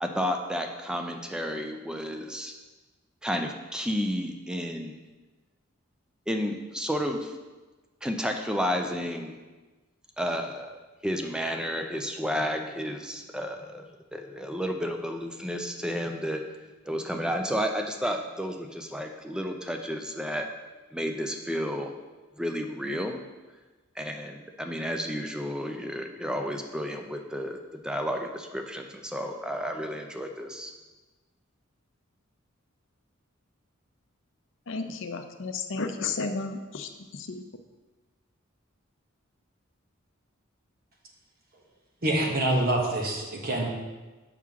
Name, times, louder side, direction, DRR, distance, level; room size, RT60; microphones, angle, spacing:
voice 1, 0.0-2.5 3.2-5.0 6.3-7.4 8.0-9.4 10.2-10.8 11.0-13.8 14.1-16.4 16.8-20.5 20.9-21.9 22.4-23.2 24.0-30.7, equal, 5° right, 4 dB, 0.5 m, -31 dB
voice 2, 34.7-36.9 37.3-37.4, left 4 dB, 65° left, 6 dB, 0.6 m, -32 dB
voice 3, 42.0-43.7, right 1 dB, 45° right, -1 dB, 1.2 m, -26 dB
7.3 x 5.9 x 3.6 m, 1.2 s
head